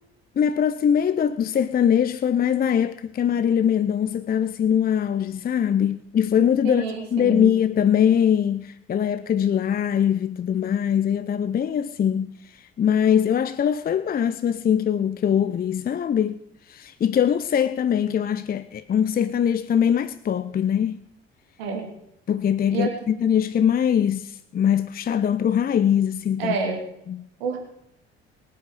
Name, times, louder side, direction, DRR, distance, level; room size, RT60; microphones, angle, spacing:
voice 1, 0.4-6.9 7.1-16.4 16.7-21.0 22.3-26.5 27.1-27.3, left 8 dB, 30° left, 0.6 m, -22 dB
voice 2, 6.6-7.5 21.6-21.9 22.7-22.9 26.4-26.8 27.4-27.6, right 5 dB, 75° right, 3.4 m, -28 dB
23.0 x 8.6 x 5.0 m
figure-of-eight pair, 50°, 31 cm